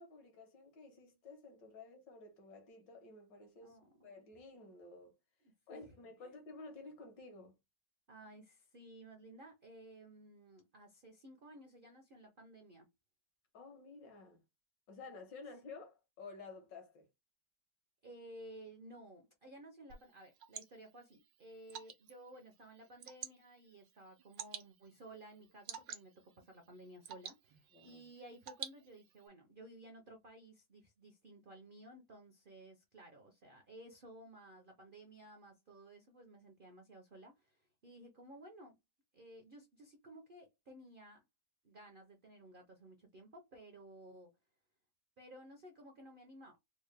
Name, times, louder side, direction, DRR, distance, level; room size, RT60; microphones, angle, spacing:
voice 1, 0.0-5.2 5.7-7.6 13.5-14.4 14.9-17.1 27.7-28.1, left 3 dB, 75° left, 1.8 m, -53 dB
voice 2, 3.6-4.1 6.2-6.3 8.1-12.9 18.0-38.8 39.1-41.2 41.6-44.3 45.2-46.6, right 1 dB, 70° right, 0.5 m, -56 dB
Water / Drip, 19.9-29.3, right 9 dB, 90° right, 1.4 m, -52 dB
4.2 x 2.1 x 3.3 m
omnidirectional pair, 1.9 m